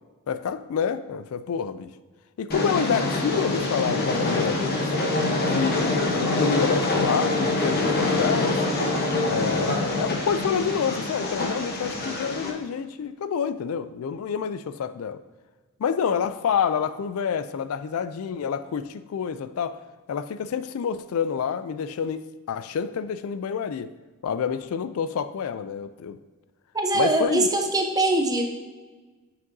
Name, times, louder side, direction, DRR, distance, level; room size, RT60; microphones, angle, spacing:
voice 1, 0.3-1.9 2.4-4.9 5.5-8.6 9.3-15.2 15.8-19.8 20.1-22.2 22.5-23.9 24.2-26.2 26.9-27.5, left 7 dB, 75° left, 13 dB, 0.3 m, -28 dB
Train, 2.5-12.5, left 2 dB, 45° left, 0.9 m, -25 dB
voice 2, 26.7-28.4, right 2 dB, 15° right, 3 dB, 0.7 m, -22 dB
7.5 x 5.9 x 2.6 m, 1.3 s
head